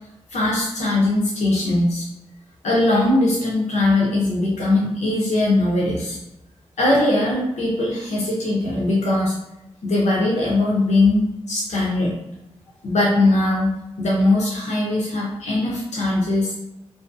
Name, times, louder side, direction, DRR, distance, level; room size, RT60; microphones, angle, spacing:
voice 1, 0.3-2.1 2.6-6.2 6.8-9.3 9.8-12.1 12.8-16.5, left 2 dB, 75° left, -5 dB, 0.7 m, -20 dB
2.6 x 2.0 x 2.3 m, 0.88 s
cardioid pair, 45°, 12 cm